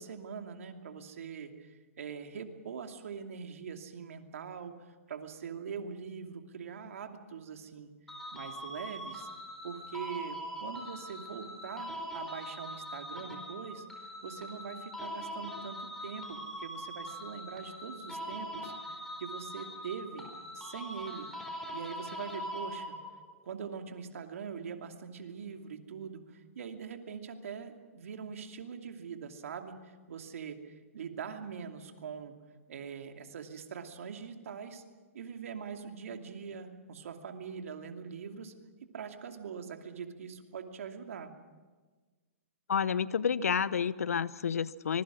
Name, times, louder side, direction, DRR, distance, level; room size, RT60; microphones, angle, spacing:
voice 1, 0.0-7.9 8.3-9.3 9.6-13.9 14.2-20.3 20.5-21.3 21.7-23.0 23.4-32.3 32.7-34.8 35.1-38.5 38.8-41.3, right 6 dB, 70° right, 5 dB, 2.7 m, -43 dB
sound 1, 8.1-23.3, equal, 5° left, 4.5 m, -42 dB
voice 2, 42.7-45.0, left 7 dB, 80° left, 17 dB, 0.9 m, -30 dB
25.5 x 21.5 x 6.3 m, 1.4 s
hypercardioid pair, 135°, 8 cm